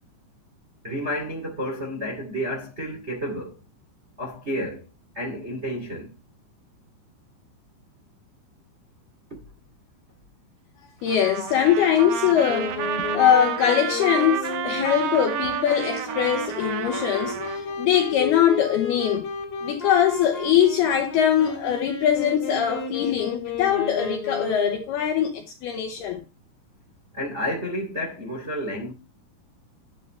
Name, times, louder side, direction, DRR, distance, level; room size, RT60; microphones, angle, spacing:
voice 1, 0.8-3.6 4.2-4.8 5.1-6.1 27.1-28.9, equal, 60° right, 0.7 m, -30 dB
voice 2, 11.0-19.3 19.6-26.2, left 9 dB, 80° left, 2.3 m, -22 dB
Trumpet, 11.1-17.6, right 9 dB, 85° right, 2.1 m, -30 dB
Wind instrument woodwind instrument, 12.5-24.9, left 4 dB, 35° left, 3.3 m, -33 dB
11.0 x 9.1 x 3.1 m
omnidirectional pair, 5.6 m